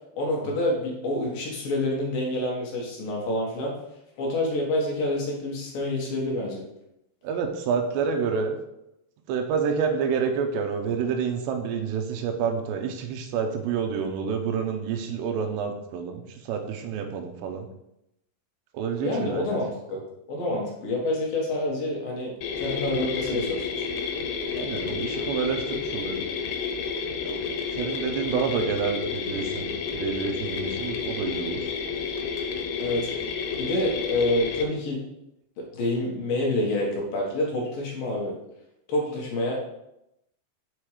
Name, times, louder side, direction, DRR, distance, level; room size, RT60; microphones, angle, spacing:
voice 1, 0.1-3.7 4.2-6.6 19.0-20.0 20.3-23.9 32.8-33.1 33.6-35.0 35.6-38.3 38.9-39.5, left 1 dB, 65° left, -2 dB, 2.8 m, -27 dB
voice 2, 7.2-8.6 9.3-17.7 18.7-19.6 23.2-23.4 24.6-26.2 27.2-27.4 27.7-31.6, right 6 dB, 85° right, 4 dB, 3.0 m, -28 dB
sound 1, 22.4-34.6, left 5 dB, 85° left, 3.2 m, -30 dB
7.5 x 4.5 x 4.9 m, 0.84 s
omnidirectional pair, 4.9 m